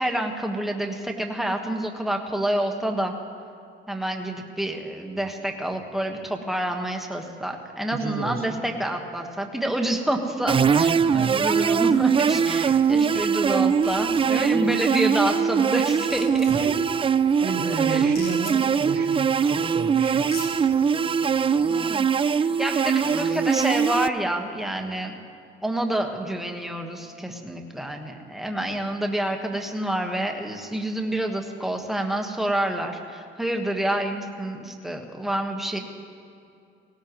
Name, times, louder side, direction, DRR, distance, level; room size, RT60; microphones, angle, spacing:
voice 1, 0.0-3.1 3.9-16.7 17.9-18.1 21.7-22.1 22.6-25.1 25.6-35.8, right 1 dB, ahead, 2 dB, 1.5 m, -28 dB
voice 2, 7.9-8.6 11.0-11.4 12.7-12.8 16.5-20.6, right 4 dB, 50° right, 2 dB, 1.8 m, -33 dB
sound 1, 10.5-24.1, right 6 dB, 25° right, 0.4 m, -22 dB
sound 2, 13.1-13.5 13.8-14.2 15.4-15.5 15.8-16.7 18.0-18.5 19.7-19.8 20.2-20.5, left 4 dB, 50° left, 2.6 m, -40 dB
18.0 x 18.0 x 3.1 m, 2.5 s
cardioid pair, 90°, 20 cm